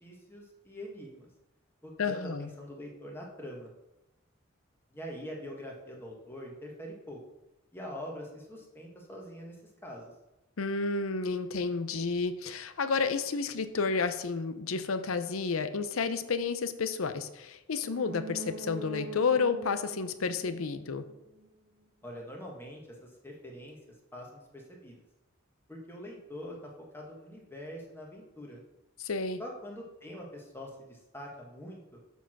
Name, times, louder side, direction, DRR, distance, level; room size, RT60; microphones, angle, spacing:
voice 1, 0.0-1.3 1.8-3.7 4.9-7.2 7.7-9.6 9.8-10.1 22.0-23.8 24.1-24.9 25.7-28.6 29.4-32.0, equal, 10° left, -1 dB, 1.4 m, -44 dB
voice 2, 2.0-2.5 10.6-21.0 29.0-29.4, left 4 dB, 85° left, 11 dB, 0.6 m, -31 dB
sound 1, 17.8-21.5 21.8-21.9, right 3 dB, 50° right, 0.9 m, -43 dB
7.0 x 4.6 x 6.0 m, 0.93 s
head